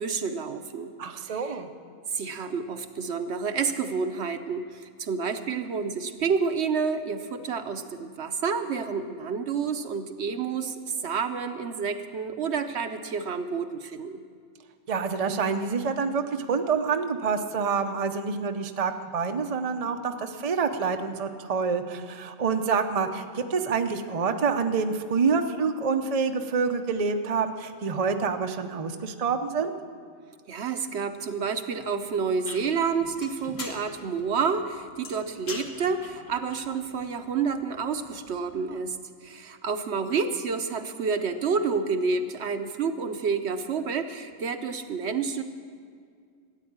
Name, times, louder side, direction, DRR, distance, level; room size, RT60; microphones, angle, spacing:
voice 1, 0.0-0.9 1.2-1.6 2.1-14.2 30.5-39.0 39.2-45.4, right 5 dB, 60° right, 8 dB, 0.9 m, -29 dB
voice 2, 1.0-1.7 14.9-16.2 16.5-29.7, right 5 dB, 35° right, 6 dB, 0.6 m, -27 dB
sound 1, 32.4-38.7, left 3 dB, 70° left, 1.7 m, -45 dB
14.0 x 9.1 x 8.6 m, 2.2 s
omnidirectional pair, 1.4 m